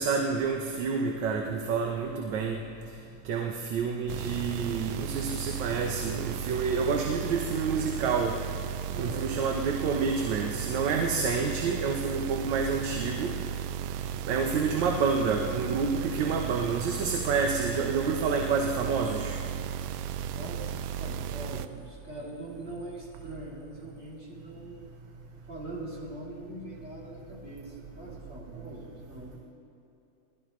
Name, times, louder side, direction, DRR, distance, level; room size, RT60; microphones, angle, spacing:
voice 1, 0.0-2.6 3.3-8.3 9.0-13.3 14.3-19.4, right 5 dB, 40° right, 2 dB, 0.9 m, -28 dB
sound 1, 4.1-21.7, right 9 dB, 65° right, 0.7 m, -35 dB
voice 2, 8.9-9.3 20.3-24.8 25.5-29.4, right 2 dB, 20° right, -6 dB, 3.1 m, -42 dB
20.0 x 12.5 x 3.2 m, 2.9 s
supercardioid pair, 180°, 49 cm